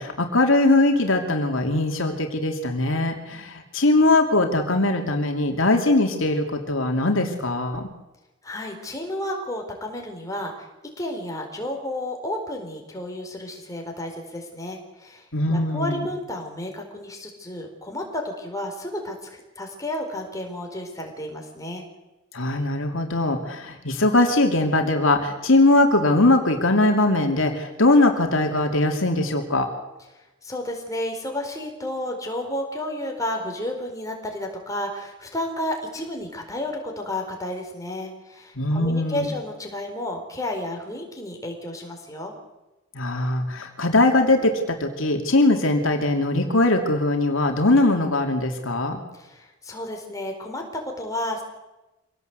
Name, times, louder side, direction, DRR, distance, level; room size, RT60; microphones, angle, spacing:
voice 1, 0.0-7.9 15.3-16.0 22.3-29.7 38.6-39.3 42.9-49.0, left 2 dB, 70° left, 4 dB, 2.8 m, -21 dB
voice 2, 8.4-10.7 11.0-15.3 15.5-21.8 30.1-42.4 49.1-51.4, left 1 dB, 15° left, 2 dB, 4.4 m, -32 dB
25.5 x 18.0 x 8.1 m, 1.0 s
head